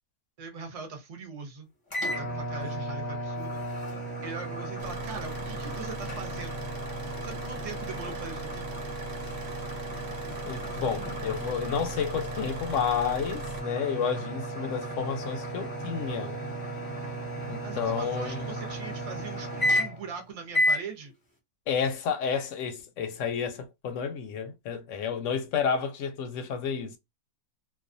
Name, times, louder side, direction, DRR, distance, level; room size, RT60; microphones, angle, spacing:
voice 1, 0.4-1.7 2.0-6.6 7.2-8.7 17.6-21.1, right 5 dB, 35° right, 0.6 m, -41 dB
sound 1, 1.9-20.1 20.5-20.9, equal, 20° left, 0.6 m, -33 dB
Car / Idling, 4.8-13.6, right 1 dB, 80° right, 1.0 m, -41 dB
voice 2, 10.5-16.4 17.5-18.4 21.7-27.0, left 6 dB, 65° left, 0.8 m, -31 dB
2.4 x 2.3 x 2.5 m
omnidirectional pair, 1.6 m